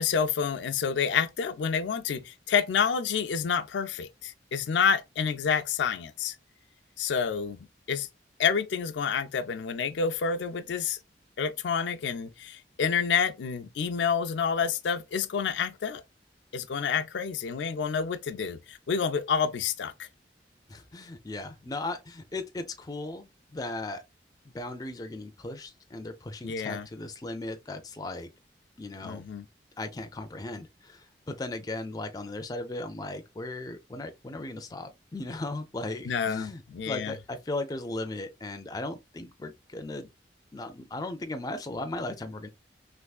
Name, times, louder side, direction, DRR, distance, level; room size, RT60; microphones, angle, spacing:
voice 1, 0.0-6.3 7.0-7.6 7.9-8.1 8.4-11.0 11.4-16.0 16.5-20.1 26.4-26.9 29.0-29.4 36.1-37.1, left 6 dB, 85° left, 0.4 m, -28 dB
voice 2, 20.7-24.0 24.4-28.3 28.8-29.3 29.8-40.1 40.5-42.5, left 2 dB, 20° left, 0.4 m, -37 dB
3.4 x 3.1 x 2.3 m
head